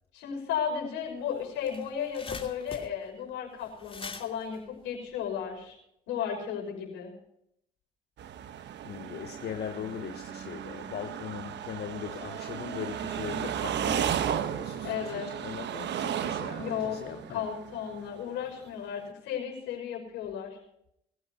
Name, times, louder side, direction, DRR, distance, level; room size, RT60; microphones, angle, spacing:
voice 1, 0.1-5.8 6.1-7.1 14.8-15.3 16.5-17.0 17.3-20.6, left 8 dB, 80° left, 6.0 m, -34 dB
sound 1, 1.1-1.2 1.4-5.7, left 4 dB, 30° left, 2.8 m, -44 dB
sound 2, 8.2-18.2, right 9 dB, 65° right, 1.2 m, -34 dB
voice 2, 8.8-17.5, left 9 dB, 55° left, 1.1 m, -40 dB
23.5 x 15.5 x 2.9 m
hypercardioid pair, 55°, 20 cm